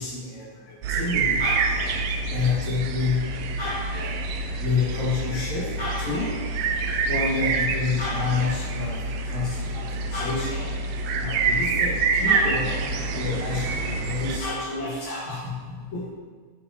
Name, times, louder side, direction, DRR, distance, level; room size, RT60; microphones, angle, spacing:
voice 1, 0.0-3.2 3.6-4.3 4.6-6.5 7.1-9.8 10.1-10.9 11.2-16.1, left 4 dB, 65° left, -6 dB, 3.4 m, -29 dB
sound 1, 0.8-14.4, right 3 dB, 85° right, 1.3 m, -27 dB
9.4 x 8.5 x 3.1 m, 1.5 s
omnidirectional pair, 3.4 m